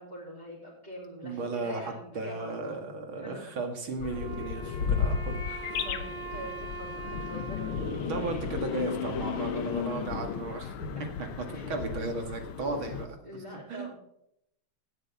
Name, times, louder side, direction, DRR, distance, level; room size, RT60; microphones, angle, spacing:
voice 1, 0.0-2.8 3.2-3.5 5.7-9.5 11.5-11.7 13.2-13.9, equal, 20° right, -6 dB, 3.6 m, -44 dB
voice 2, 1.2-5.8 8.0-13.2 13.5-13.9, right 3 dB, 70° right, 4 dB, 2.8 m, -35 dB
sound 1, 4.0-13.1, left 7 dB, 80° left, 1.8 m, -34 dB
Wind instrument woodwind instrument, 4.1-9.3, right 4 dB, 45° right, 5.8 m, -43 dB
16.5 x 12.5 x 3.7 m, 0.75 s
omnidirectional pair, 2.3 m